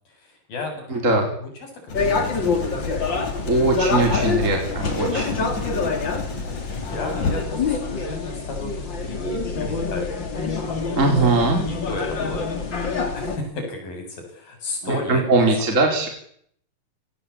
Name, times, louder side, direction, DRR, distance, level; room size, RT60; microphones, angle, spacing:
voice 1, 0.2-1.5 1.9-3.3 6.1-10.2 11.7-12.8 13.1-15.7, left 2 dB, 85° left, 4 dB, 9.7 m, -34 dB
voice 2, 0.9-1.3 3.4-5.4 10.9-11.6 14.8-16.1, right 3 dB, 20° right, 2 dB, 4.4 m, -20 dB
Writing, 1.9-7.4, left 3 dB, 55° left, 5.6 m, -31 dB
sound 1, 1.9-13.4, left 4 dB, 35° left, 3.4 m, -26 dB
30.0 x 19.0 x 8.6 m, 0.66 s
omnidirectional pair, 4.0 m